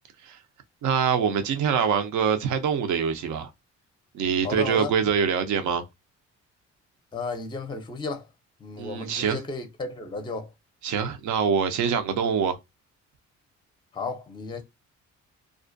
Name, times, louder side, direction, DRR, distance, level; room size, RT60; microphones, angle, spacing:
voice 1, 0.8-3.5 4.1-5.9 8.8-9.4 10.8-12.6, right 7 dB, 75° right, 0.6 m, -24 dB
voice 2, 4.4-4.9 7.1-8.3 8.6-10.5 13.9-14.6, left 3 dB, 15° left, 0.5 m, -33 dB
2.4 x 2.1 x 2.5 m
cardioid pair, 90°, 30 cm